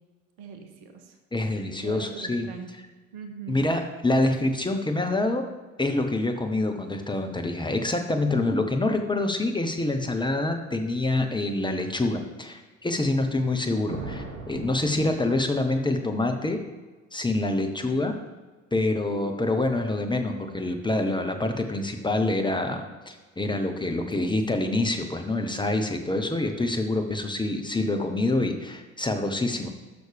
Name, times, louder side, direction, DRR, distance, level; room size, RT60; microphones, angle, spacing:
voice 1, 0.4-1.2 1.8-2.7 3.1-3.6 24.0-24.4, right 5 dB, 60° right, 6 dB, 1.2 m, -41 dB
voice 2, 1.3-2.5 3.5-5.5 5.8-16.6 17.1-18.1 18.7-29.7, left 2 dB, 10° left, 4 dB, 1.0 m, -26 dB
sound 1, 13.9-15.8, right 3 dB, 85° right, 1.0 m, -39 dB
12.0 x 6.3 x 3.4 m, 1.2 s
figure-of-eight pair, 55°, 38 cm